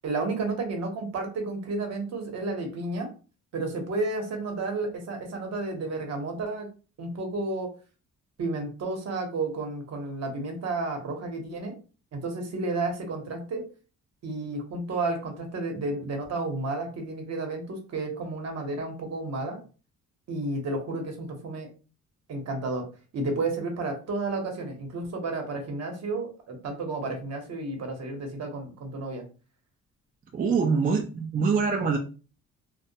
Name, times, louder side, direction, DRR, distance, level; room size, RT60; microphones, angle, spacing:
voice 1, 0.0-3.1 3.5-6.7 7.0-7.7 8.4-11.8 12.1-13.6 14.2-19.6 20.3-21.7 22.3-22.9 23.1-29.2, right 3 dB, 60° right, 3 dB, 0.9 m, -31 dB
voice 2, 30.3-32.0, right 5 dB, 30° right, 3 dB, 0.4 m, -24 dB
2.1 x 2.1 x 2.7 m, 0.35 s
cardioid pair, 90°, 30 cm